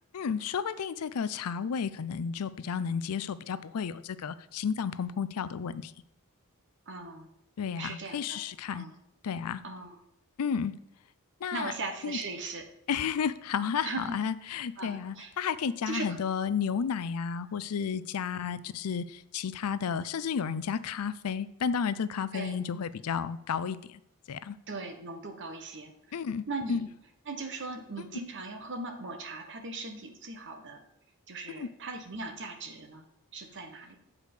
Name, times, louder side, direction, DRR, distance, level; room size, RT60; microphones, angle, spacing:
voice 1, 0.1-5.9 7.6-8.9 9.2-9.6 10.4-10.8 11.4-11.7 12.0-12.2 12.9-24.0 24.3-24.6 26.1-26.9 28.0-28.1 31.6-31.7, left 6 dB, 80° left, 15 dB, 0.5 m, -32 dB
voice 2, 6.9-7.3 7.8-8.4 8.7-8.9 9.6-10.0 11.5-12.7 13.8-14.2 14.8-15.3 15.9-16.2 18.3-18.6 22.3-22.6 24.7-25.9 26.5-26.8 27.3-30.8 31.3-33.0 33.3-34.0, right 3 dB, 55° right, 5 dB, 1.3 m, -39 dB
8.2 x 4.9 x 6.7 m, 0.80 s
head